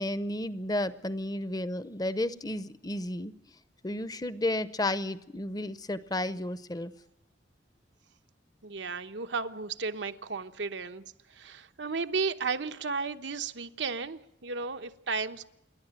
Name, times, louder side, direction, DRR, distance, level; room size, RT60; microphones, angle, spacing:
voice 1, 0.0-3.3 3.8-6.9, left 1 dB, 20° left, 14 dB, 0.8 m, -32 dB
voice 2, 8.6-11.0 11.3-15.5, right 4 dB, 80° right, 8 dB, 1.0 m, -34 dB
27.5 x 11.5 x 8.9 m, 0.85 s
head